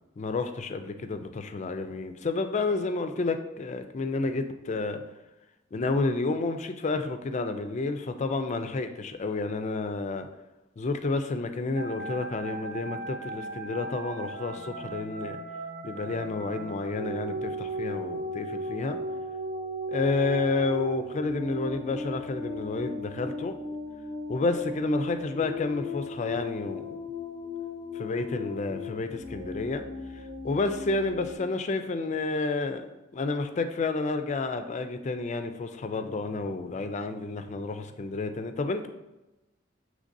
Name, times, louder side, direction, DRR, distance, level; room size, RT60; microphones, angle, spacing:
voice 1, 0.2-5.0 5.7-10.3 10.8-15.4 15.8-19.0 19.9-23.5 24.3-26.9 27.9-29.8 30.1-32.9 33.1-38.9, left 3 dB, 35° left, 8 dB, 0.4 m, -30 dB
sound 1, 11.7-31.4, equal, 80° right, 1.1 m, -37 dB
6.4 x 3.2 x 2.6 m, 0.99 s
head